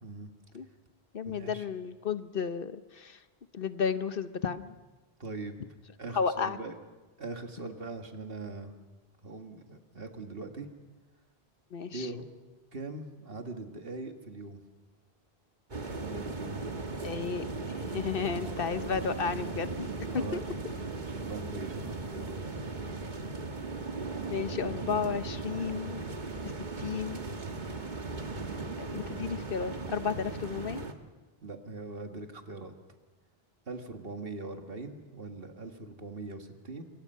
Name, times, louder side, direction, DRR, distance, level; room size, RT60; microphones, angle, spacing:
voice 1, 0.0-0.3 1.3-1.7 5.2-5.5 6.0-6.7 7.2-8.7 9.2-10.7 11.9-12.2 12.7-14.6 15.9-16.6 20.0-20.4 21.0-22.5 31.4-32.7 33.7-36.8, right 3 dB, 65° right, 5 dB, 2.1 m, -41 dB
voice 2, 1.1-3.2 3.5-4.7 6.1-6.6 11.7-12.1 17.0-19.9 20.1-20.4 24.3-26.0 26.8-27.2 28.8-30.8, left 6 dB, 65° left, 11 dB, 1.1 m, -33 dB
sound 1, 15.7-30.9, right 3 dB, 50° right, 1.6 m, -37 dB
27.0 x 23.5 x 5.6 m, 1.2 s
omnidirectional pair, 1.0 m